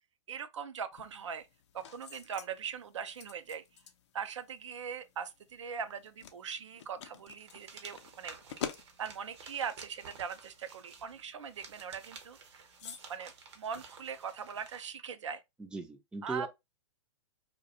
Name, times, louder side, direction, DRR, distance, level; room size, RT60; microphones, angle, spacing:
voice 1, 0.3-1.5 1.7-3.6 4.1-8.4 9.0-15.4 16.2-16.5, right 7 dB, 80° right, 0.4 m, -41 dB
sound 1, 0.9-14.7, left 8 dB, 70° left, 0.5 m, -50 dB
sound 2, 7.4-14.9, right 5 dB, 65° right, 0.8 m, -53 dB
voice 2, 15.6-16.5, right 3 dB, 5° right, 0.4 m, -38 dB
2.3 x 2.1 x 2.7 m
hypercardioid pair, 120°, 15 cm